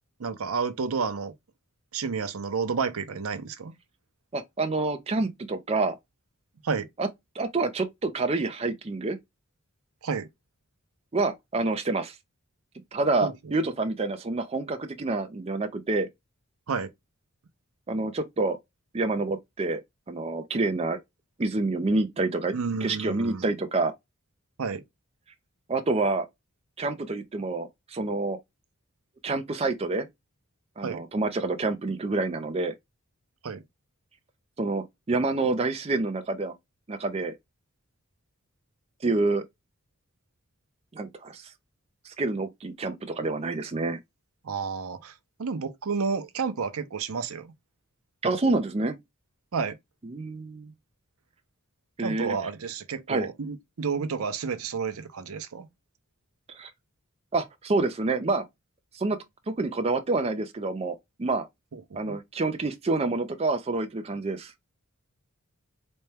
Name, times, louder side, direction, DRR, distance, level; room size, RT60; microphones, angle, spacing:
voice 1, 0.2-1.3 1.9-3.7 6.6-6.9 10.0-10.3 13.2-13.3 16.7-16.9 22.5-23.4 24.6-24.8 30.8-31.0 33.4-33.6 44.4-45.1 45.4-47.5 49.5-49.7 52.0-55.7 61.7-61.8 62.1-62.2, right 5 dB, 70° right, 0.6 m, -30 dB
voice 2, 4.3-6.0 7.0-7.1 7.4-9.2 11.1-12.1 12.9-16.1 17.9-18.6 18.9-19.8 20.1-21.0 21.4-22.5 22.8-23.9 25.7-26.3 26.8-28.4 29.2-30.1 30.8-32.7 34.6-36.5 36.9-37.3 39.0-39.4 40.9-41.5 42.0-44.0 48.2-49.0 50.0-50.7 52.0-52.4 53.1-53.3 56.5-56.7 57.3-58.4 58.9-59.2 59.5-61.5 61.9-64.5, right 3 dB, 25° right, 0.5 m, -27 dB
4.2 x 2.2 x 3.2 m
head